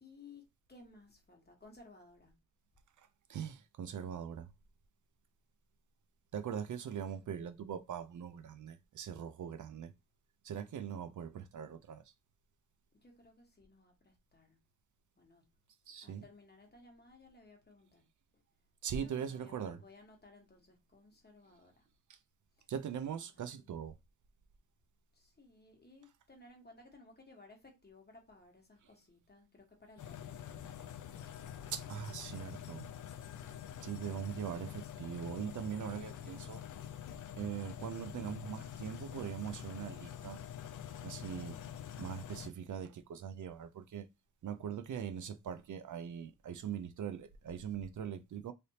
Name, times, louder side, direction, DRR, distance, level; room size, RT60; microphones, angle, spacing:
voice 1, 0.0-2.3 12.9-14.6 15.2-15.4 16.0-18.0 18.9-21.9 22.6-22.7 23.3-23.7 25.1-31.0, left 3 dB, 30° left, 1.3 m, -59 dB
voice 2, 3.0-4.5 6.3-9.9 10.4-12.0 15.9-16.2 18.8-19.8 22.1-22.2 22.7-23.9 31.7-32.9 33.8-36.6 37.4-40.4 41.0-41.6 42.0-44.1 44.4-48.5, right 8 dB, 60° right, 0.5 m, -41 dB
sound 1, 30.0-42.5, left 9 dB, 60° left, 0.5 m, -46 dB
3.3 x 2.6 x 2.8 m
cardioid pair, 90°, 35 cm